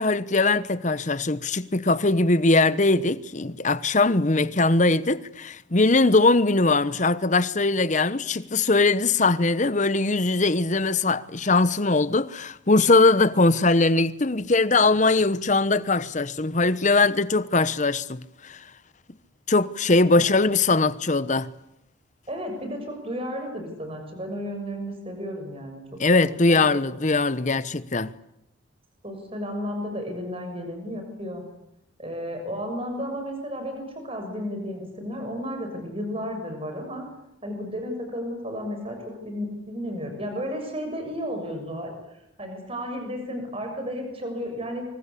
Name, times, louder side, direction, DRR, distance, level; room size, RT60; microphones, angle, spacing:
voice 1, 0.0-18.6 19.5-21.5 26.0-28.1, left 3 dB, 35° left, 1.0 m, -21 dB
voice 2, 22.3-25.8 26.1-26.2 26.5-26.6 29.0-31.4 32.0-37.0 37.4-41.9 42.4-44.8, equal, 30° right, 6.6 m, -33 dB
27.0 x 25.0 x 8.5 m
head